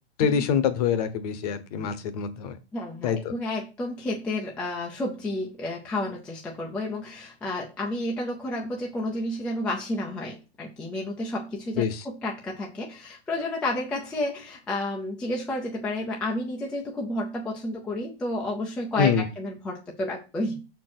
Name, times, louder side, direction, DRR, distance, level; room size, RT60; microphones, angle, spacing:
voice 1, 0.2-2.6 3.0-3.3 11.8-12.0 19.0-19.2, left 7 dB, 35° left, 12 dB, 1.0 m, -25 dB
voice 2, 2.7-20.7, left 1 dB, 5° left, -2 dB, 0.5 m, -31 dB
6.0 x 4.4 x 6.0 m, 0.31 s
hypercardioid pair, 160°, 33 cm